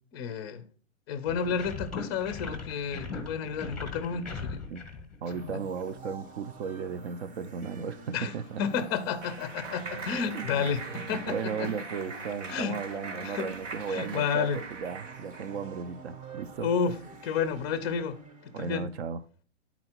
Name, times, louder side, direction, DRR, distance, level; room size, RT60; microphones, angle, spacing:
voice 1, 0.1-0.6 1.1-4.6 5.3-5.6 8.1-8.3 8.6-11.7 12.5-12.8 13.2-13.5 13.9-14.6 16.6-16.9 17.2-18.2 18.6-18.9, left 6 dB, 20° left, 0.4 m, -31 dB
sound 1, 1.3-5.9, left 4 dB, ahead, 0.8 m, -39 dB
sound 2, 5.2-18.7, right 3 dB, 30° right, 0.7 m, -48 dB
voice 2, 5.2-8.6 10.3-10.7 11.1-16.7 18.5-19.2, right 6 dB, 60° right, 0.6 m, -35 dB
Clapping, 8.4-15.6, right 4 dB, 85° right, 1.5 m, -41 dB
8.7 x 4.0 x 4.3 m
hypercardioid pair, 145°, 36 cm